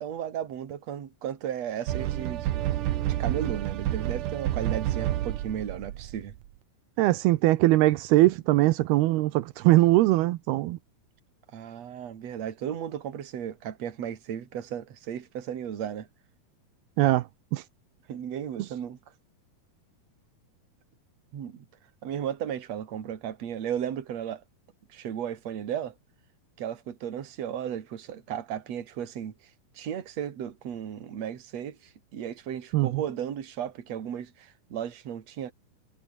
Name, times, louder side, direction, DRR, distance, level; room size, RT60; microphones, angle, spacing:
voice 1, 0.0-2.5 3.1-6.3 11.5-16.1 18.1-19.0 21.3-21.7 22.0-24.4 24.9-25.9 26.6-29.3 29.7-35.5, right 9 dB, 45° right, 3.1 m, -35 dB
sound 1, 1.9-6.4, right 13 dB, 65° right, 2.3 m, -29 dB
voice 2, 7.0-10.8 17.0-17.3 17.5-17.6 32.7-33.0, right 17 dB, 85° right, 2.8 m, -21 dB
omnidirectional pair, 4.5 m